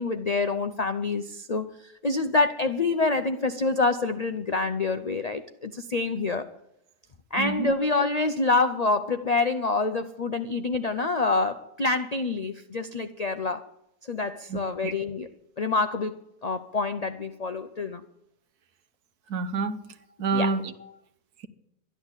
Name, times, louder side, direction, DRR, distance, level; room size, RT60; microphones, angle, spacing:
voice 1, 0.0-6.5 7.3-13.6 14.1-15.3 15.6-18.0 20.3-20.5, left 3 dB, 70° left, 0.3 m, -27 dB
voice 2, 7.4-7.7 14.5-14.9 19.3-19.9 20.2-20.7, right 4 dB, 80° right, 1.5 m, -28 dB
12.0 x 11.5 x 8.1 m
omnidirectional pair, 1.6 m